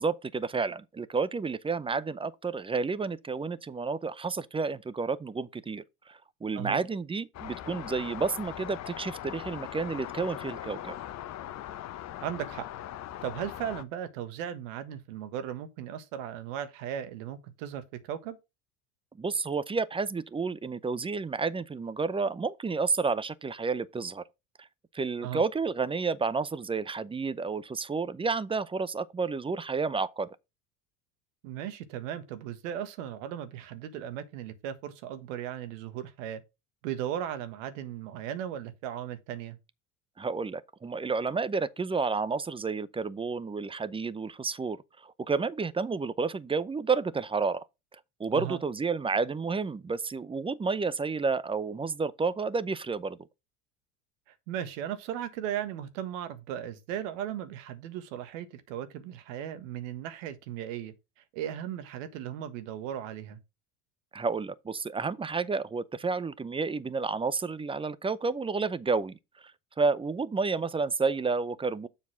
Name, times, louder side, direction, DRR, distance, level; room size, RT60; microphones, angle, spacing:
voice 1, 0.0-11.0 19.2-24.2 24.6-24.7 24.9-30.4 40.2-47.6 48.2-53.2 64.1-69.5 69.8-71.9, right 4 dB, 15° right, 0.6 m, -30 dB
sound 1, 7.3-13.8, left 12 dB, 45° left, 0.9 m, -40 dB
voice 2, 12.2-12.7 13.2-18.4 25.2-25.4 31.4-36.4 36.8-39.6 48.3-48.6 54.5-60.9 61.3-63.4, right 10 dB, 75° right, 1.5 m, -37 dB
7.3 x 4.0 x 5.8 m
hypercardioid pair, 85°, 38 cm